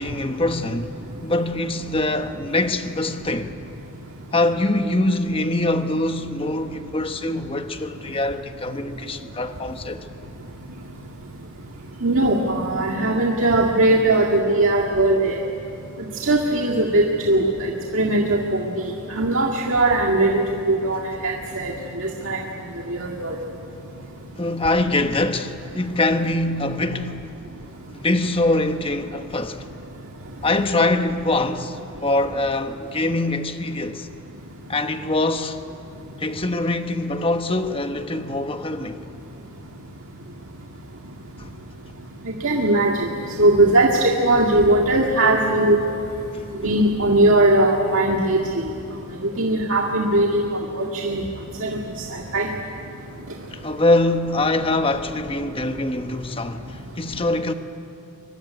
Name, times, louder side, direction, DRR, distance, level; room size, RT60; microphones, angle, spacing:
voice 1, 0.0-3.6 4.3-10.0 24.4-27.3 27.9-29.7 30.4-34.1 34.7-35.6 36.2-39.0 41.4-41.5 46.6-46.7 53.5-57.5, left 2 dB, 25° left, 1.1 m, -23 dB
voice 2, 12.0-15.4 16.2-18.4 19.1-20.3 20.7-22.4 22.9-23.4 42.3-43.1 43.4-45.8 46.6-48.4 49.2-50.5 50.8-51.2 51.6-51.8 52.3-52.5, right 2 dB, 70° right, 2.0 m, -19 dB
23.5 x 23.0 x 9.6 m
head